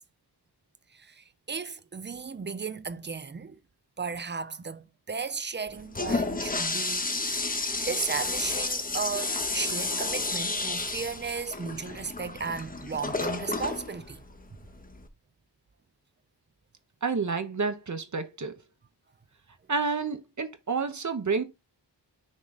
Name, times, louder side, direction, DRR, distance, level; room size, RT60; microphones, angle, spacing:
voice 1, 0.9-3.6 4.0-7.4 7.9-14.2 14.5-14.6, right 5 dB, 25° right, 0.5 m, -35 dB
Toilet flush, 5.7-15.1, left 3 dB, 20° left, 0.8 m, -31 dB
voice 2, 17.0-18.6 19.7-21.4, right 4 dB, 45° right, 0.9 m, -29 dB
6.2 x 3.7 x 4.0 m
wide cardioid pair, 110°, 42 cm